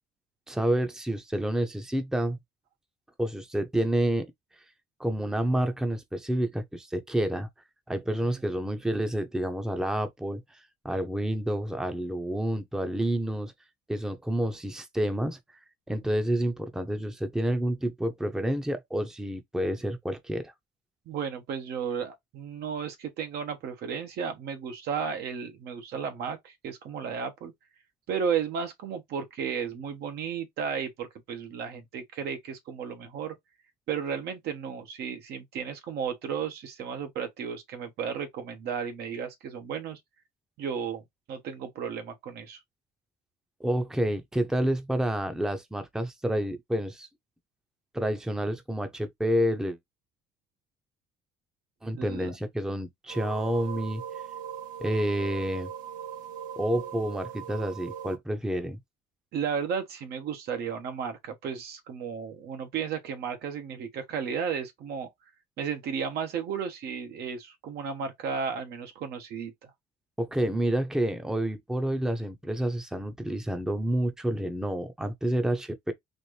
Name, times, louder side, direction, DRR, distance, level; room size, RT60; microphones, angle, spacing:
voice 1, 0.5-2.4 3.2-4.3 5.0-7.5 7.9-10.6 10.8-13.5 13.9-15.4 15.9-20.5 43.6-47.1 47.9-49.8 51.8-54.0 54.8-55.7 56.6-58.8 70.2-75.9, right 1 dB, 5° right, 0.7 m, -29 dB
voice 2, 21.1-27.5 28.1-33.3 33.9-40.0 40.6-42.6 51.9-52.3 59.3-65.1 65.6-69.7, right 7 dB, 75° right, 1.2 m, -34 dB
sound 1, 53.1-58.2, right 9 dB, 55° right, 1.6 m, -39 dB
4.2 x 2.6 x 3.2 m
cardioid pair, 110°, 17 cm